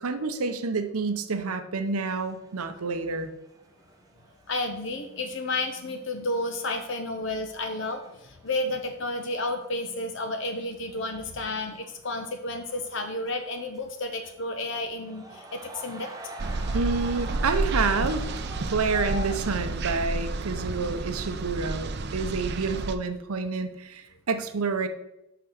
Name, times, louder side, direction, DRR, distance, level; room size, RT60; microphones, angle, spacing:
voice 1, 0.0-3.3 16.7-18.3 18.6-24.9, right 4 dB, 85° right, 8 dB, 0.7 m, -28 dB
sound 1, 1.9-21.2, right 1 dB, 15° right, 0.8 m, -47 dB
voice 2, 4.5-16.1, left 2 dB, 55° left, 6 dB, 0.7 m, -31 dB
sound 2, 16.4-23.0, right 3 dB, 50° right, 0.5 m, -30 dB
5.9 x 5.9 x 6.5 m, 0.86 s
head